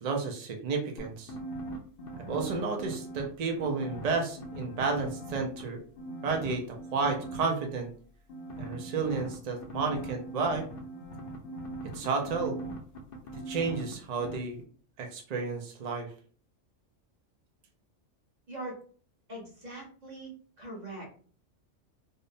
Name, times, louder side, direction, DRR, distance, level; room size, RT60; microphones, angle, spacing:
voice 1, 0.0-1.3 2.3-5.8 6.2-7.9 8.6-10.7 11.9-12.6 13.5-14.6 15.0-16.1, right 4 dB, 65° right, 2 dB, 0.4 m, -31 dB
sound 1, 1.0-3.2 3.6-5.6 6.0-7.4 8.3-13.9 14.2-14.4, right 1 dB, 60° left, 0.7 m, -40 dB
voice 2, 19.3-20.3 20.6-21.1, right 1 dB, 40° right, -3 dB, 0.9 m, -41 dB
2.6 x 2.0 x 2.5 m, 0.43 s
omnidirectional pair, 1.3 m